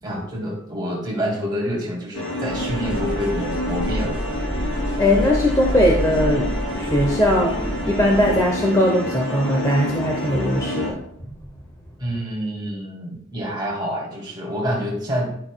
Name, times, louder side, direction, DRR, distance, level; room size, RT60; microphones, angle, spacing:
voice 1, 0.0-4.2 12.0-15.3, equal, 20° right, -3 dB, 2.0 m, -27 dB
sound 1, 2.1-10.9, left 1 dB, 65° left, 2.1 m, -28 dB
sound 2, 2.5-8.5, equal, 5° right, 0.4 m, -29 dB
voice 2, 5.0-6.5 6.7-7.6 7.9-11.0, left 1 dB, 15° left, -1 dB, 0.8 m, -19 dB
10.5 x 5.9 x 2.3 m, 0.71 s
head